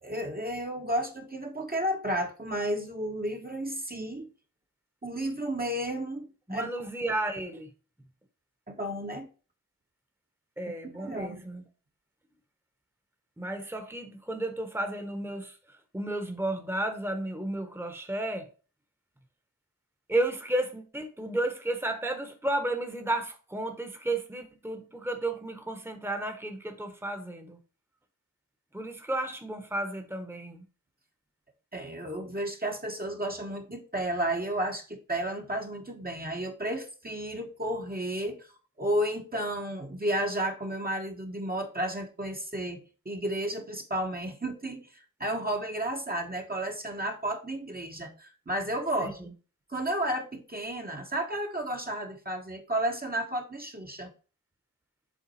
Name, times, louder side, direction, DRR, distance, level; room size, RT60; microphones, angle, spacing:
voice 1, 0.0-4.3 5.0-6.7 8.7-9.3 10.9-11.4 31.7-38.5 38.8-49.2 49.7-54.1, right 1 dB, 30° right, 1.1 m, -32 dB
voice 2, 6.5-7.7 10.6-11.6 13.4-18.5 20.1-27.6 28.7-30.6 49.0-49.3, right 1 dB, 5° right, 1.1 m, -33 dB
7.3 x 3.6 x 4.2 m
wide cardioid pair, 50°, 33 cm